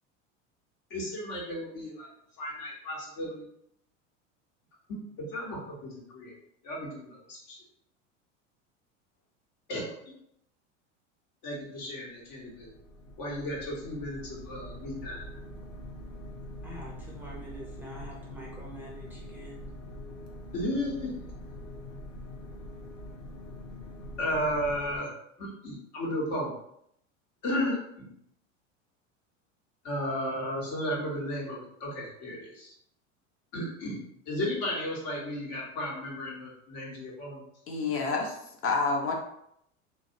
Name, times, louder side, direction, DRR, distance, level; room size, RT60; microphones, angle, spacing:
voice 1, 0.9-2.1 2.4-3.5 4.9-5.0 5.3-6.3 6.6-7.6 9.7-9.8 11.4-12.7 13.2-15.2 20.5-21.1 24.2-25.1 25.4-26.5 27.4-28.1 29.8-32.7 33.5-34.0 34.3-37.4, left 1 dB, 55° left, -3 dB, 1.1 m, -34 dB
sound 1, 12.2-25.0, left 1 dB, 85° left, 0.6 m, -44 dB
voice 2, 16.6-19.6, right 1 dB, 5° right, -4 dB, 0.5 m, -46 dB
voice 3, 37.7-38.4 38.6-39.1, left 4 dB, 35° left, 1 dB, 0.7 m, -28 dB
2.5 x 2.0 x 2.6 m, 0.74 s
hypercardioid pair, 95°, 38 cm